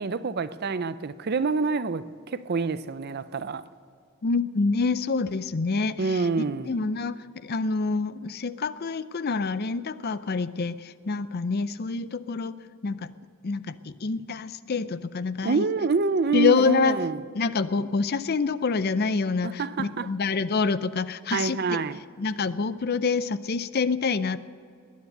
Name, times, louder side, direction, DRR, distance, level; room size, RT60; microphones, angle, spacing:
voice 1, 0.0-3.6 6.0-6.7 15.4-17.2 19.4-20.1 21.3-22.0, right 4 dB, 45° right, 0.5 m, -27 dB
voice 2, 4.2-6.3 6.7-12.6 12.8-13.1 13.4-15.6 16.3-17.0 17.3-21.8 22.2-24.4, left 4 dB, 45° left, 0.5 m, -26 dB
20.5 x 9.5 x 6.7 m
head